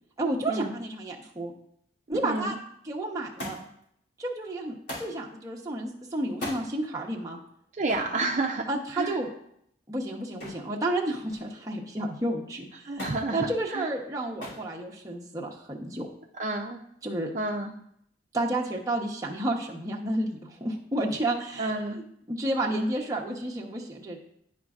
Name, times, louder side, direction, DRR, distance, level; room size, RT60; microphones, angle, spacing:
voice 1, 0.2-1.5 2.1-2.5 2.8-3.6 4.2-7.4 8.7-9.3 9.9-16.1 17.0-17.3 18.3-24.2, right 1 dB, 20° right, -2 dB, 0.9 m, -31 dB
voice 2, 2.2-2.6 7.8-8.7 8.9-9.2 12.8-13.9 16.4-16.8 17.3-17.8 21.6-22.0, right 2 dB, 40° right, 1 dB, 0.5 m, -30 dB
Thump thud, 3.4-3.9 4.9-5.2 6.3-6.7 7.9-8.1 10.4-10.7 11.1-11.6 13.0-13.3 14.4-14.7 15.6-16.1 17.1-17.2, left 1 dB, 75° left, 2.8 m, -38 dB
11.0 x 5.1 x 2.4 m, 0.72 s
head